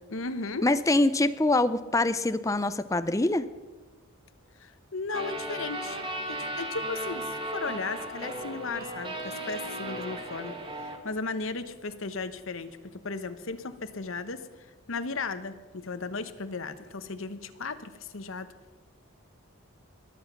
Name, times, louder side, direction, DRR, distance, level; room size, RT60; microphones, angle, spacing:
voice 1, 0.1-0.7 4.6-6.0 6.3-10.6 10.8-14.4 14.9-18.5, left 4 dB, 70° left, 11 dB, 1.0 m, -35 dB
voice 2, 0.6-3.5, left 2 dB, 15° left, 12 dB, 0.5 m, -24 dB
sound 1, 5.1-11.0, right 1 dB, 25° right, 1.5 m, -36 dB
21.5 x 8.1 x 5.8 m, 1.4 s
head